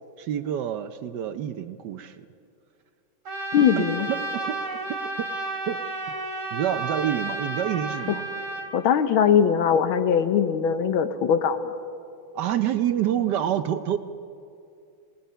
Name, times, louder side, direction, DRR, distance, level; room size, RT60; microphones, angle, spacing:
voice 1, 0.2-2.3 3.8-4.6 5.7-5.8 6.5-8.3 12.3-14.0, right 10 dB, 70° right, 10 dB, 1.2 m, -27 dB
Trumpet, 3.2-8.7, right 2 dB, 85° right, 2.5 m, -32 dB
voice 2, 3.5-4.1 8.1-8.2 8.7-11.6, left 8 dB, 85° left, 10 dB, 1.7 m, -21 dB
27.5 x 19.0 x 5.6 m, 2.5 s
omnidirectional pair, 2.2 m